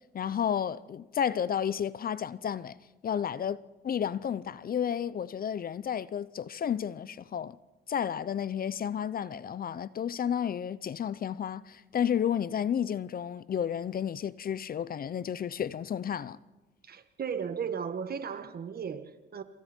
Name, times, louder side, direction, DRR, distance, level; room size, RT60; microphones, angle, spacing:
voice 1, 0.1-2.8 3.0-7.6 7.9-16.4, left 8 dB, 45° left, 0.7 m, -32 dB
voice 2, 16.8-19.4, right 7 dB, 50° right, 1.7 m, -35 dB
27.5 x 27.5 x 4.5 m
cardioid pair, 90°, 20 cm